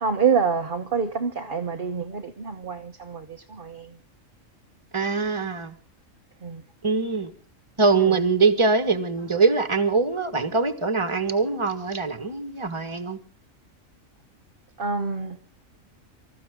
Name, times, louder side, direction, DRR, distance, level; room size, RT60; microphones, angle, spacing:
voice 1, 0.0-3.2 3.6-3.8 6.4-6.6 14.8-15.4, right 6 dB, 40° right, 1.1 m, -26 dB
voice 2, 4.9-5.7 6.8-7.3 7.8-13.2, right 4 dB, 20° right, 1.5 m, -23 dB
25.5 x 14.5 x 3.7 m
omnidirectional pair, 1.4 m